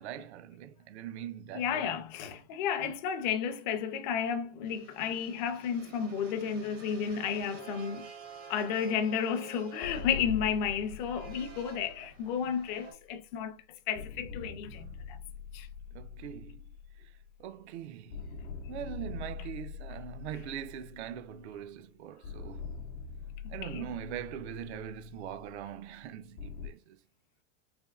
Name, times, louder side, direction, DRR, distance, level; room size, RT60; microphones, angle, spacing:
voice 1, 0.0-1.9 15.9-16.7 17.4-18.2 18.7-22.7 23.5-27.0, right 10 dB, 65° right, 0.5 m, -42 dB
voice 2, 1.5-8.1 8.5-13.5 13.9-15.2 15.5-15.7 23.4-23.9, left 7 dB, 40° left, 0.4 m, -32 dB
sound 1, 4.6-12.9, right 5 dB, 85° right, 1.3 m, -50 dB
sound 2, 9.8-13.4 14.0-17.8 18.1-21.7 22.2-26.7, left 6 dB, 90° left, 0.7 m, -44 dB
3.4 x 2.5 x 2.3 m
supercardioid pair, 165°, 37 cm